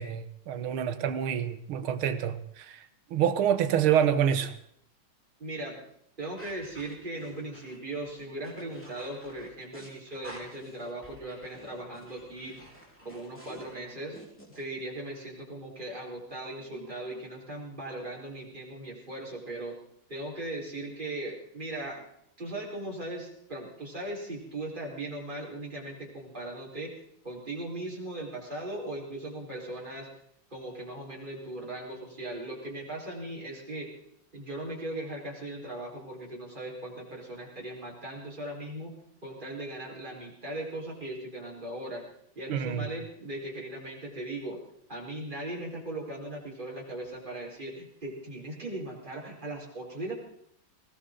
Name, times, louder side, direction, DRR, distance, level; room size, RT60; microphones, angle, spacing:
voice 1, 0.0-2.8 3.1-4.5 42.5-42.9, right 9 dB, 85° right, 1.9 m, -27 dB
voice 2, 5.4-5.8 6.2-12.7 13.0-14.2 14.5-19.8 20.1-22.1 22.4-26.9 27.2-30.1 30.5-33.9 34.3-39.0 39.2-42.0 42.3-44.6 44.9-50.1, right 1 dB, 20° right, 4.6 m, -38 dB
sound 1, 6.4-14.6, equal, 5° left, 4.0 m, -50 dB
20.5 x 17.5 x 3.8 m
omnidirectional pair, 2.2 m